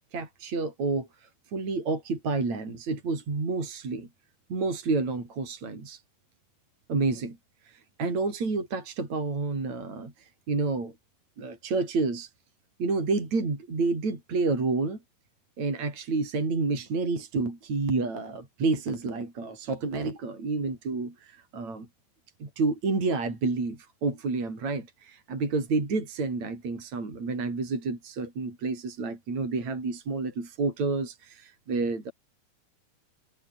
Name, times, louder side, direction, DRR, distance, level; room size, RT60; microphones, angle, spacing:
voice 1, 0.1-4.1 4.5-6.0 6.9-7.4 7.7-10.9 11.4-12.3 12.8-15.0 15.6-21.9 22.4-32.1, right 3 dB, 40° right, 7.4 m, -29 dB
omnidirectional pair, 5.2 m